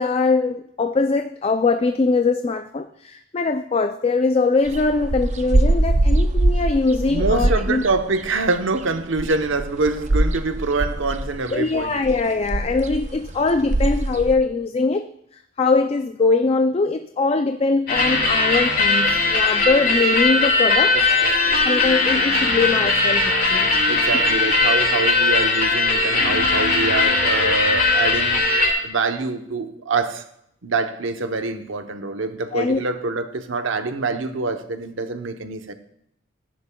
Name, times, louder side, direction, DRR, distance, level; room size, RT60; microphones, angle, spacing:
voice 1, 0.0-7.8 11.5-21.0 21.6-23.8 24.1-24.2 27.4-27.5 32.5-32.8, left 3 dB, 30° left, 0.3 m, -22 dB
sound 1, 4.7-14.4, right 1 dB, 35° right, 0.5 m, -22 dB
voice 2, 7.1-12.0 20.9-21.7 23.9-28.4 28.8-30.2 30.6-35.7, right 3 dB, 70° right, 0.9 m, -25 dB
sound 2, 17.9-28.7, left 3 dB, 50° left, 2.7 m, -19 dB
15.0 x 10.5 x 2.3 m
head